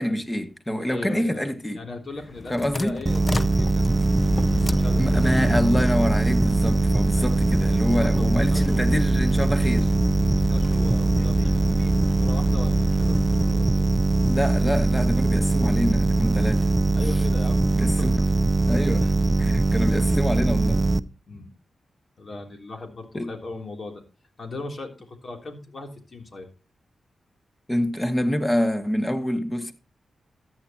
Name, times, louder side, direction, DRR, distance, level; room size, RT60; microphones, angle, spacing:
voice 1, 0.0-1.8 2.5-3.0 5.0-9.9 14.2-16.7 17.8-18.3 18.7-19.1 19.4-20.8 23.1-23.3 27.7-29.7, equal, 15° left, 2.0 m, -26 dB
voice 2, 0.9-4.1 4.5-5.2 7.1-7.4 7.8-8.9 10.3-13.9 16.9-18.3 19.0-19.1 19.9-20.1 21.3-21.5 22.2-24.0 24.4-26.5, left 2 dB, 55° left, 3.2 m, -39 dB
sound 1, 2.2-13.7, left 3 dB, 35° left, 0.6 m, -33 dB
sound 2, 3.1-21.0, right 2 dB, 30° right, 0.6 m, -21 dB
14.0 x 9.8 x 3.0 m
supercardioid pair, 45°, 0 cm